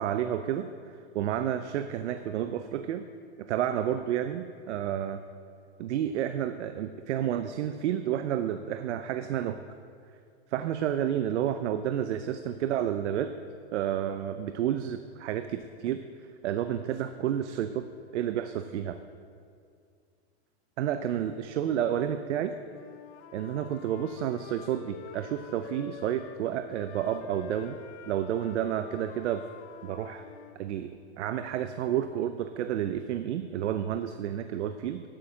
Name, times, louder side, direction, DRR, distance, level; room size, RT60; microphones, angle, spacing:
voice 1, 0.0-3.0 3.4-5.2 5.8-9.6 10.5-13.3 13.7-16.0 16.4-19.0 20.8-22.5 23.3-27.8 28.1-29.4 29.8-30.3 30.6-35.0, right 10 dB, 80° right, 10 dB, 0.6 m, -30 dB
Wind instrument woodwind instrument, 22.7-26.4 26.7-30.6, left 9 dB, 40° left, 0.8 m, -47 dB
8.5 x 7.6 x 7.4 m, 2.3 s
supercardioid pair, 135°, 34 cm